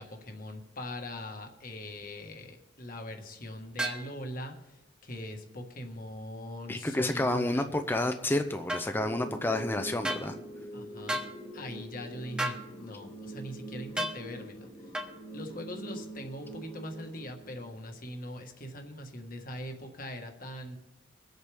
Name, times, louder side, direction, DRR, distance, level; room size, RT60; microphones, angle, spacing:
voice 1, 0.0-4.5 5.0-7.7 10.7-11.2 11.5-14.7 15.3-20.8, left 1 dB, 50° left, 4 dB, 1.6 m, -41 dB
sound 1, 3.8-4.0 8.7-8.9 10.0-10.3 11.1-11.3 12.4-12.6 14.0-14.2 14.9-15.1, right 1 dB, 5° right, 1.2 m, -32 dB
voice 2, 6.7-10.4, left 1 dB, 10° left, 7 dB, 0.5 m, -30 dB
sound 2, 8.9-18.0, right 1 dB, 25° left, 1.7 m, -44 dB
22.5 x 8.1 x 3.5 m, 0.97 s
head